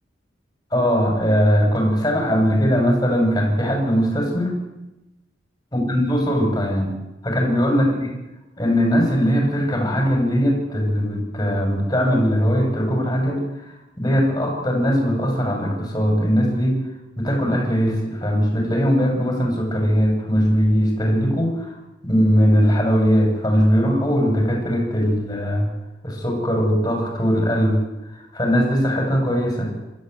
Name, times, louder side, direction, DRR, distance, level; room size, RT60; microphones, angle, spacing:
voice 1, 0.7-4.5 5.7-6.9 7.2-8.1 8.6-13.4 14.0-16.8 17.2-21.7 22.0-25.7 26.0-27.8 28.3-29.7, equal, 20° left, 1 dB, 6.7 m, -20 dB
25.5 x 13.5 x 8.2 m, 0.97 s
head